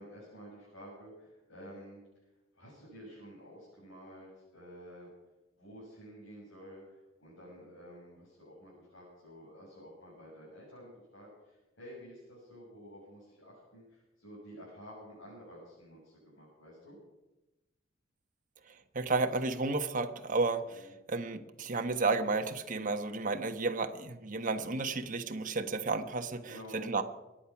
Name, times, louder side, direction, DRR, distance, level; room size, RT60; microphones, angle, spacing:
voice 1, 0.0-2.3 2.5-5.1 5.6-17.0 20.7-20.9 26.5-26.8, equal, 65° left, -7 dB, 7.0 m, -51 dB
voice 2, 18.9-27.0, right 3 dB, 40° right, 7 dB, 1.2 m, -32 dB
24.0 x 10.0 x 6.0 m, 1.0 s
head